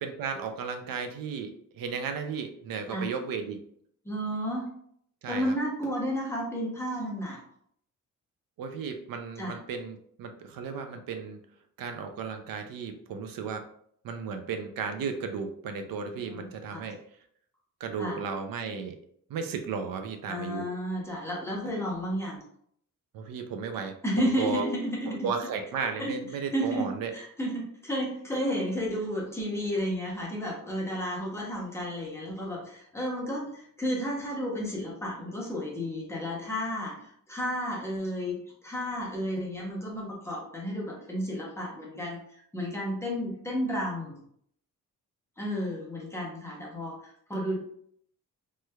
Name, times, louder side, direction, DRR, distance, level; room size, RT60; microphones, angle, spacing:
voice 1, 0.0-3.6 5.2-5.5 8.6-11.4 11.8-13.6 14.0-17.0 17.8-19.0 19.3-20.7 23.1-24.7 25.0-27.1, right 5 dB, 80° right, 7 dB, 0.5 m, -34 dB
voice 2, 4.0-4.7 5.3-7.4 9.4-9.6 16.3-16.8 18.0-18.2 20.3-22.4 24.0-25.2 26.0-26.1 26.5-44.2 45.4-47.6, equal, 10° left, -4 dB, 0.7 m, -32 dB
3.2 x 3.1 x 2.2 m, 0.66 s
wide cardioid pair, 180°, 34 cm